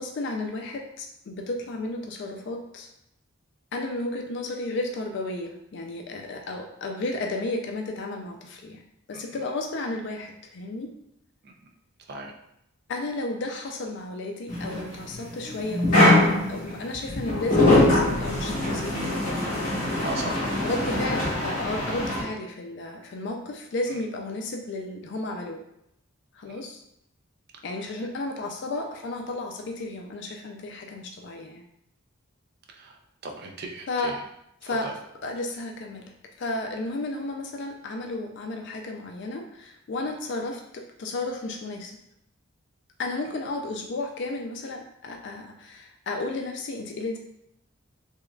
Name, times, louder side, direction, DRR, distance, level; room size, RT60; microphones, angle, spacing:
voice 1, 0.0-2.9 3.7-8.8 9.1-10.9 12.9-19.8 20.6-25.6 26.3-26.8 27.6-31.6 33.9-34.2 34.6-34.9 35.2-36.1 36.4-42.0 43.0-47.2, left 2 dB, 55° left, 3 dB, 0.4 m, -33 dB
sound 1, 14.5-22.2, left 1 dB, 40° left, 1.1 m, -23 dB
voice 2, 20.0-20.5 26.5-26.6 32.7-34.2 34.6-34.9, right 2 dB, 50° right, 2 dB, 0.4 m, -38 dB
3.5 x 3.0 x 2.3 m, 0.77 s
head